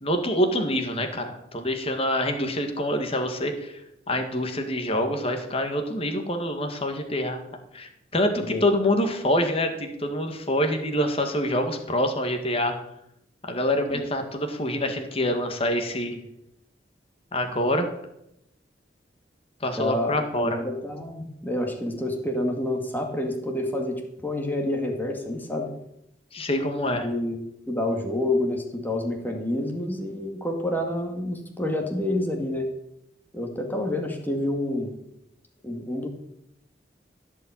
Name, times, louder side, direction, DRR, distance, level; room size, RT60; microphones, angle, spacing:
voice 1, 0.0-3.8 4.1-7.4 7.7-12.8 13.5-16.2 17.3-17.9 19.6-20.6 26.3-27.1, left 1 dB, 35° left, 5 dB, 1.9 m, -26 dB
voice 2, 19.8-25.7 27.0-32.7 33.3-34.9 35.6-36.1, left 1 dB, 10° left, 2 dB, 2.1 m, -28 dB
15.5 x 5.7 x 9.0 m, 0.80 s
head